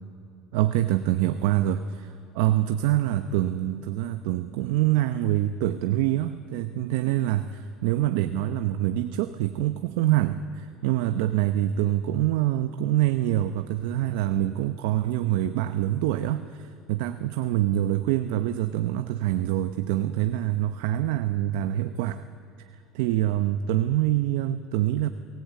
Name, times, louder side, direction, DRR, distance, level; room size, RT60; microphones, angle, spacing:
voice 1, 0.5-22.2 22.9-25.1, right 13 dB, 85° right, 10 dB, 0.8 m, -25 dB
24.0 x 17.5 x 8.3 m, 2.8 s
cardioid pair, 125°, 0 cm